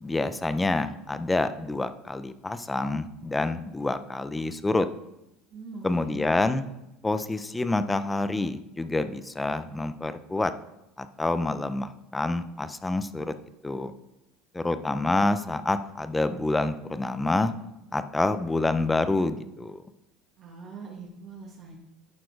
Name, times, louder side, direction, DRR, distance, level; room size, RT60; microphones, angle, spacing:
voice 1, 0.0-4.9 5.8-6.6 7.0-10.5 11.0-13.3 13.6-13.9 14.5-17.5 17.9-19.8, left 2 dB, 10° left, 12 dB, 0.5 m, -27 dB
voice 2, 5.5-6.2 20.4-21.8, right 4 dB, 50° right, -1 dB, 1.4 m, -42 dB
11.5 x 4.2 x 4.7 m, 0.90 s
supercardioid pair, 105°, 0 cm